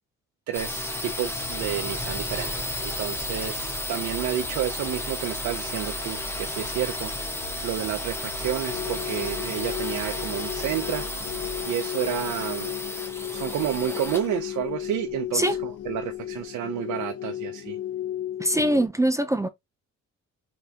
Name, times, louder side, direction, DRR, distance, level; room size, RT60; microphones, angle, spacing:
sound 1, 0.5-16.2, left 1 dB, 10° left, 0.8 m, -33 dB
voice 1, 0.5-7.1 7.4-11.0 11.7-12.8 13.3-17.8 18.6-18.7, right 11 dB, 80° right, 0.6 m, -30 dB
sound 2, 1.3-11.6, right 2 dB, 35° left, 1.8 m, -42 dB
sound 3, 8.7-18.9, left 12 dB, 55° left, 0.5 m, -34 dB
voice 2, 18.4-19.5, right 1 dB, 10° right, 0.4 m, -23 dB
3.5 x 2.8 x 3.4 m
cardioid pair, 90°, 30 cm